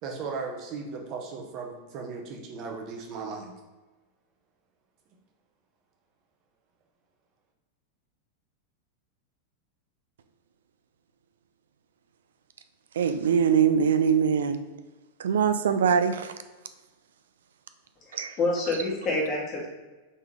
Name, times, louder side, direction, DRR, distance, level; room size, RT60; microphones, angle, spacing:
voice 1, 0.0-3.5, right 4 dB, 40° right, 2 dB, 0.9 m, -36 dB
voice 2, 13.0-14.6 15.2-16.3 18.1-18.3, right 7 dB, 65° right, 10 dB, 0.3 m, -23 dB
voice 3, 18.0-19.7, left 2 dB, 30° left, -2 dB, 1.4 m, -28 dB
4.2 x 3.4 x 3.4 m, 1.2 s
figure-of-eight pair, 90°, 0 cm